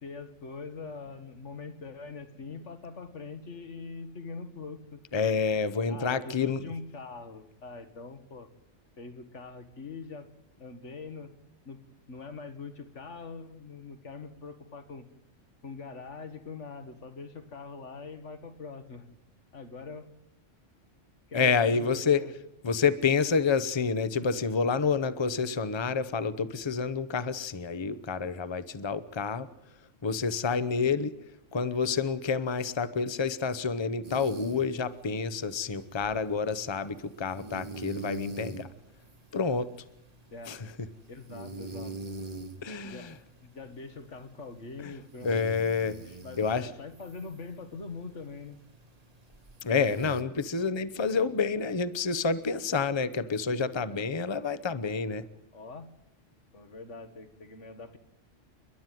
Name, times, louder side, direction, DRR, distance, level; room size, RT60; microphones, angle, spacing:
voice 1, 0.0-5.0 5.9-8.5 9.0-10.3 10.6-11.3 11.7-11.8 12.1-15.1 15.6-19.0 19.5-20.1 21.3-22.3 40.3-40.6 41.1-42.3 42.8-43.1 43.4-45.4 46.2-48.6 53.9-54.0 55.5-55.9 56.5-58.0, left 4 dB, 75° left, 9 dB, 2.1 m, -43 dB
voice 2, 5.1-6.6 21.3-22.2 22.6-29.5 30.0-31.1 31.5-38.7 39.3-39.7 40.5-40.7 42.6-43.1 45.2-46.0 46.4-46.7 49.6-55.2, left 5 dB, 25° left, 15 dB, 0.8 m, -28 dB
sound 1, 34.0-50.2, right 2 dB, 35° right, 1.4 m, -45 dB
29.5 x 11.5 x 9.3 m, 0.81 s
omnidirectional pair, 1.2 m